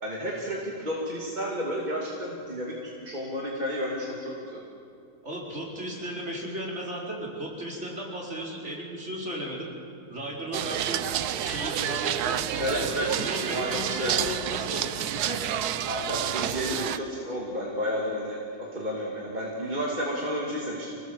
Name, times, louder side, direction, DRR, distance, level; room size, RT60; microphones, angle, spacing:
voice 1, 0.0-4.6 12.6-14.1 15.9-21.0, equal, 30° right, -4 dB, 2.7 m, -32 dB
voice 2, 5.2-9.7 10.1-15.4, right 1 dB, 45° right, -3 dB, 4.9 m, -35 dB
sound 1, 10.5-17.0, right 10 dB, 80° right, 1.3 m, -29 dB
26.0 x 19.0 x 7.5 m, 2.6 s
omnidirectional pair, 1.6 m